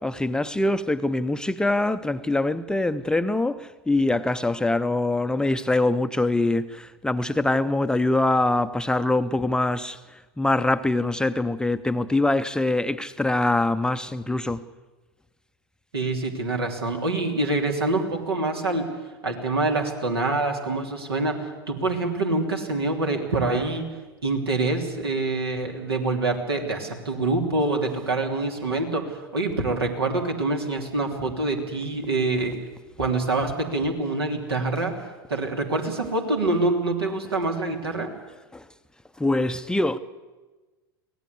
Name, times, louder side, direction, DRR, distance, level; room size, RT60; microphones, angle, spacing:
voice 1, 0.0-14.6 38.5-38.6 39.2-40.0, left 2 dB, 5° left, 0.6 m, -24 dB
voice 2, 15.9-18.9 19.2-23.9 24.2-32.6 33.0-34.9 35.3-38.1, right 2 dB, 80° right, 3.1 m, -25 dB
24.5 x 17.5 x 8.1 m
figure-of-eight pair, 90°, 13 cm